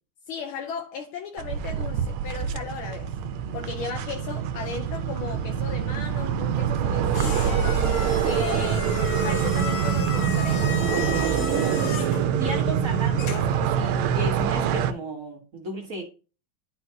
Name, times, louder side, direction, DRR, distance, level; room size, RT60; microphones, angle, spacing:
voice 1, 0.3-3.1 3.5-7.9 8.2-10.8, left 6 dB, 80° left, 1.7 m, -36 dB
sound 1, 1.4-14.9, right 8 dB, 85° right, 1.6 m, -25 dB
sound 2, 6.3-13.6, left 7 dB, 55° left, 0.9 m, -36 dB
voice 2, 11.3-12.0 12.4-16.0, right 2 dB, 45° right, 1.8 m, -34 dB
11.5 x 4.6 x 2.8 m
omnidirectional pair, 2.3 m